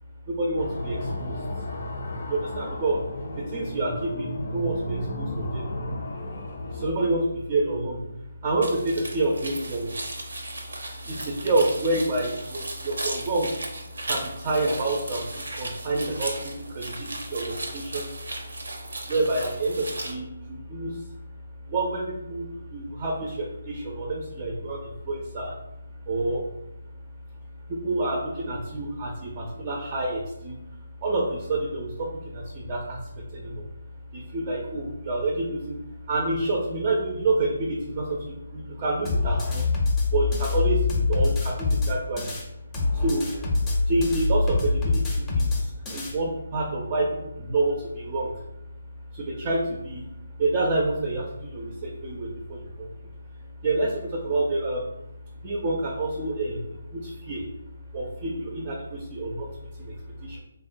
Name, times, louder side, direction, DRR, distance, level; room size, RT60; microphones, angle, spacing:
voice 1, 0.3-1.4 2.2-3.0 3.4-5.7 6.7-8.0 8.4-10.0 11.0-13.5 14.0-18.2 19.1-21.1 21.7-25.5 26.1-26.4 27.7-30.6 31.0-33.0 33.3-33.7 34.1-35.8 36.1-39.7 40.1-42.3 42.9-43.3 43.9-48.4 49.1-50.1 50.4-52.9 53.6-54.9 55.4-57.4 57.9-59.5 59.8-59.9 60.2-60.4, right 2 dB, 30° right, 0 dB, 0.4 m, -28 dB
sound 1, 0.6-6.9, left 1 dB, 65° left, 0.5 m, -33 dB
sound 2, 8.6-20.1, right 2 dB, 85° right, 0.6 m, -36 dB
sound 3, 39.1-42.4 42.7-46.1, left 3 dB, 15° left, 0.6 m, -25 dB
3.4 x 2.1 x 2.5 m, 0.86 s
hypercardioid pair, 155°, 0 cm